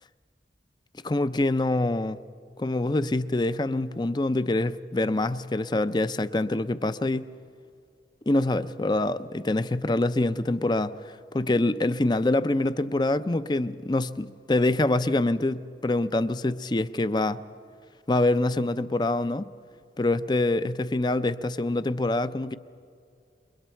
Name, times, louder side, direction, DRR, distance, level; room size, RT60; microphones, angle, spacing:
voice 1, 1.0-2.2 2.6-7.3 8.3-17.4 18.1-19.5 20.0-22.6, left 2 dB, 25° left, 0.5 m, -25 dB
28.5 x 22.5 x 4.5 m
head